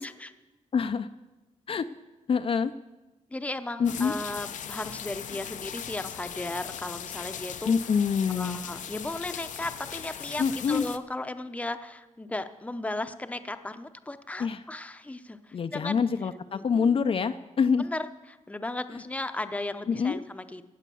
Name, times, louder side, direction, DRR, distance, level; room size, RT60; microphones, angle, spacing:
voice 1, 0.7-1.1 1.7-1.8 2.3-2.7 3.8-4.1 7.7-8.6 10.4-10.8 14.4-14.6 15.5-17.8 19.9-20.2, left 6 dB, 50° left, 9 dB, 0.5 m, -26 dB
voice 2, 3.3-7.7 8.3-16.0 16.5-17.0 17.8-20.7, left 2 dB, 10° left, 9 dB, 0.7 m, -36 dB
sound 1, 3.8-11.0, left 8 dB, 90° left, 0.7 m, -39 dB
16.5 x 8.2 x 6.9 m, 1.1 s
wide cardioid pair, 120°, 13 cm